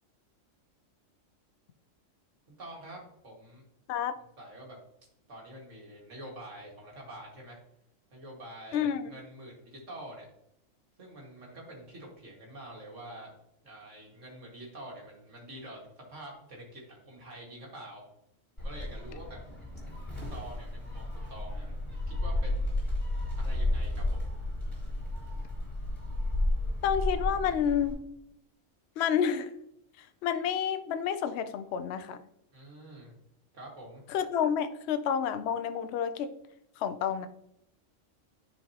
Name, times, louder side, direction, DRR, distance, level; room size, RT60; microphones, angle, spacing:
voice 1, 2.5-3.6 4.4-4.8 5.3-7.6 8.1-10.3 11.0-13.3 13.6-18.0 18.6-19.4 20.3-22.7 23.4-24.3 32.5-33.1 33.5-34.0, right 1 dB, 70° right, -1 dB, 2.3 m, -46 dB
voice 2, 8.7-9.1 26.8-28.0 29.0-29.5 30.0-32.2 34.1-36.3 36.8-37.3, left 8 dB, 65° left, 9 dB, 0.8 m, -29 dB
Gull seagull, 18.6-27.9, left 1 dB, 20° left, 3.1 m, -32 dB
10.0 x 4.6 x 2.8 m, 0.77 s
omnidirectional pair, 1.3 m